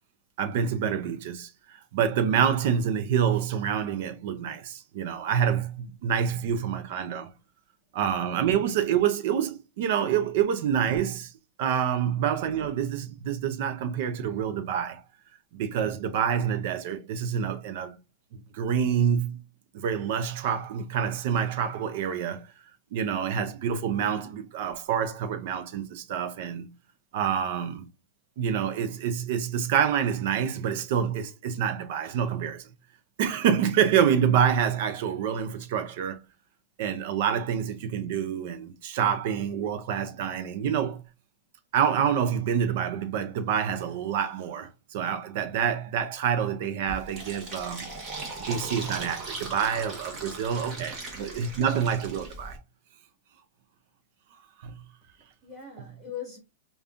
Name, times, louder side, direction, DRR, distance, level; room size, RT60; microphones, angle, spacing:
voice 1, 0.4-7.3 7.9-11.3 11.6-15.0 15.5-18.0 18.5-19.4 19.7-22.5 22.9-26.7 27.1-27.8 28.4-32.7 33.2-36.2 36.8-41.0 41.7-47.9 48.5-52.6 54.6-54.8, right 8 dB, 45° right, 0.6 m, -27 dB
Fill (with liquid), 46.9-52.6, right 2 dB, 20° right, 1.0 m, -38 dB
voice 2, 50.5-51.1 55.2-56.4, left 8 dB, ahead, 1.7 m, -42 dB
5.2 x 2.3 x 2.5 m
supercardioid pair, 170°, 0 cm